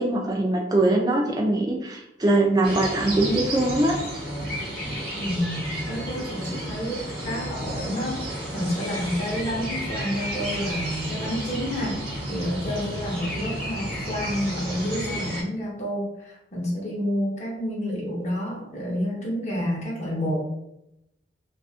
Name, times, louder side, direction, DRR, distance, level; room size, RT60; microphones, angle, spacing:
voice 1, 0.0-4.0, right 2 dB, 20° right, 0 dB, 0.4 m, -22 dB
sound 1, 2.6-15.4, equal, 45° right, 1.3 m, -32 dB
voice 2, 5.2-12.0 12.3-20.4, equal, 35° left, -4 dB, 0.7 m, -29 dB
2.5 x 2.4 x 2.4 m, 0.84 s
head